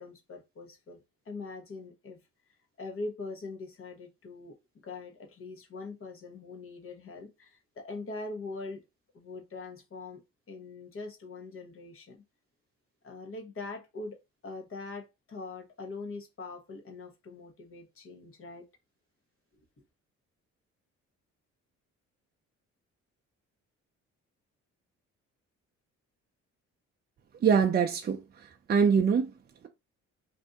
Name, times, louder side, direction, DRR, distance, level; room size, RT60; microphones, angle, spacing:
voice 1, 0.0-2.2 2.8-4.6 4.8-8.8 9.1-12.2 13.0-14.2 14.4-18.7, left 3 dB, 45° left, 1.1 m, -42 dB
voice 2, 27.4-29.3, right 6 dB, 35° right, 0.5 m, -24 dB
2.7 x 2.6 x 3.5 m
cardioid pair, 90°, 30 cm